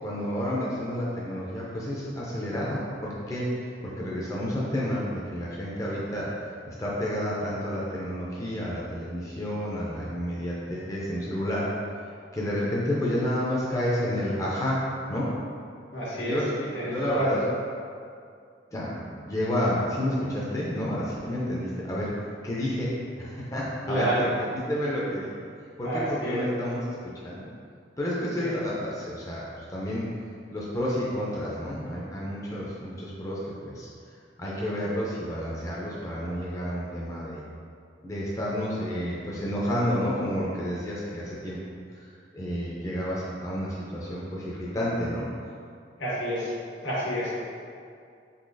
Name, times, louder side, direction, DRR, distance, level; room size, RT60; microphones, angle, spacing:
voice 1, 0.0-3.7 4.0-6.3 6.7-11.7 12.3-14.8 15.1-15.3 16.2-16.5 16.8-17.4 18.7-22.1 22.4-22.9 23.2-25.3 25.8-26.8 27.2-27.4 28.0-30.0 30.5-33.9 34.4-37.4 38.0-41.6 41.9-42.0 42.3-45.3, equal, 20° left, -6 dB, 0.4 m, -30 dB
voice 2, 15.9-16.4 16.7-17.4 23.9-24.3 25.8-26.4 28.4-28.5 46.0-46.5 46.8-47.3, right 1 dB, 85° left, -8 dB, 1.2 m, -29 dB
3.8 x 2.7 x 2.6 m, 2.3 s
head